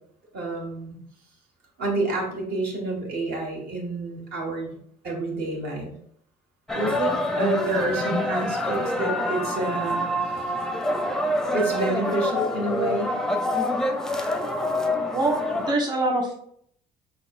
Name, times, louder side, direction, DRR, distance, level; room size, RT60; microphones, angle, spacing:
voice 1, 0.3-1.0 1.8-4.7 5.0-5.9 6.7-10.0 11.5-13.2, right 2 dB, 65° right, -1 dB, 1.6 m, -28 dB
sound 1, 6.7-15.7, left 1 dB, 5° left, 0.5 m, -26 dB
voice 2, 15.0-16.3, right 2 dB, 25° right, -1 dB, 1.1 m, -25 dB
5.2 x 4.1 x 2.5 m, 0.65 s
cardioid pair, 110°, 17 cm